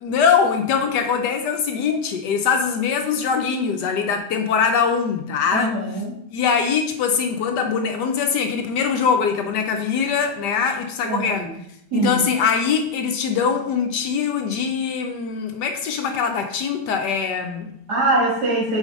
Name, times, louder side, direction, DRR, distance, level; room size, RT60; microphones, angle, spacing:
voice 1, 0.0-5.8 6.3-11.5 11.9-17.7, left 6 dB, 75° left, 5 dB, 1.2 m, -22 dB
voice 2, 5.5-6.1 11.1-11.3 11.9-12.2 17.9-18.8, right 2 dB, 65° right, -6 dB, 2.8 m, -22 dB
4.9 x 4.5 x 5.1 m, 0.72 s
omnidirectional pair, 1.9 m